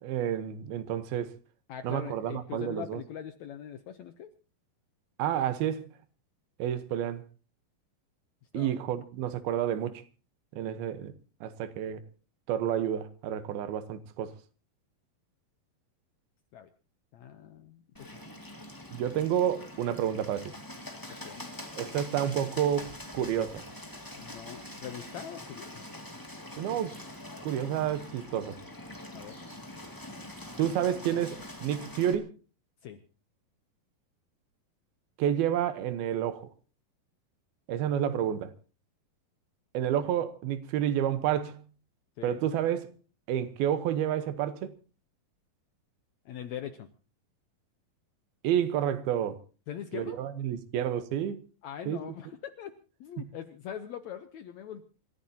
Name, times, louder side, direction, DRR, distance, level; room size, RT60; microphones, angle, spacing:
voice 1, 0.0-1.4 1.8-3.0 5.2-5.9 6.6-7.2 8.5-10.0 10.6-11.1 11.4-12.0 12.5-14.3 18.9-20.5 21.8-23.6 26.6-26.9 27.4-28.6 30.6-32.3 35.2-36.5 37.7-38.5 39.7-41.6 42.2-42.9 43.3-44.7 48.4-49.4 49.9-51.4 51.9-52.0, right 10 dB, 90° right, 3.0 m, -30 dB
voice 2, 1.7-4.3 8.5-8.7 16.5-16.7 17.1-18.2 21.1-21.5 24.1-25.8 29.1-29.4 32.8-33.0 42.2-42.4 46.2-46.9 49.7-50.2 51.6-54.8, left 9 dB, 75° left, 1.7 m, -42 dB
Bird, 17.9-32.1, left 1 dB, 10° left, 1.3 m, -44 dB
27.5 x 14.5 x 2.8 m
omnidirectional pair, 4.2 m